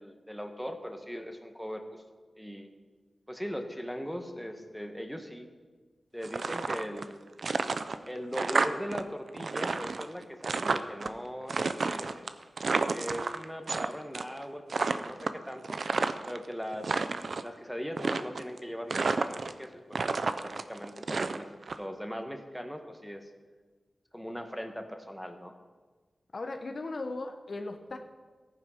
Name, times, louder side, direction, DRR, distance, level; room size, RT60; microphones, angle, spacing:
voice 1, 0.0-2.0 2.4-2.7 3.3-5.5 6.1-7.2 8.1-12.4 12.9-15.8 16.3-17.0 17.4-21.5 21.7-23.3 24.1-25.5, equal, ahead, 5 dB, 1.5 m, -39 dB
sound 1, 6.2-7.1 7.4-9.0 9.3-11.1 11.5-13.9 14.1-14.4 14.7-16.4 16.7-17.5 18.0-18.6 18.9-19.6 19.9-21.8, right 4 dB, 70° right, 0.6 m, -30 dB
voice 2, 26.3-28.0, left 2 dB, 60° left, 6 dB, 1.0 m, -37 dB
14.5 x 9.6 x 5.8 m, 1.4 s
wide cardioid pair, 65°, 0 cm